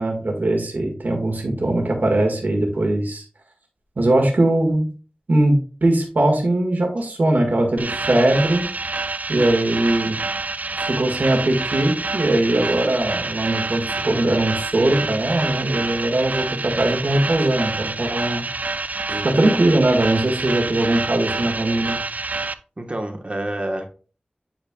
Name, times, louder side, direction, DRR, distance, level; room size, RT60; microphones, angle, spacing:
voice 1, 0.0-3.2 4.0-4.9 5.3-5.6 5.8-8.7 9.3-10.2 10.8-18.4 19.1-22.0, right 1 dB, 85° right, 2 dB, 1.8 m, -20 dB
sound 1, 7.8-22.5, right 3 dB, 65° right, 0.4 m, -27 dB
voice 2, 19.1-19.5 22.8-23.9, right 1 dB, 40° right, 4 dB, 1.2 m, -29 dB
10.0 x 4.4 x 2.3 m, 0.38 s
wide cardioid pair, 60°, 3 cm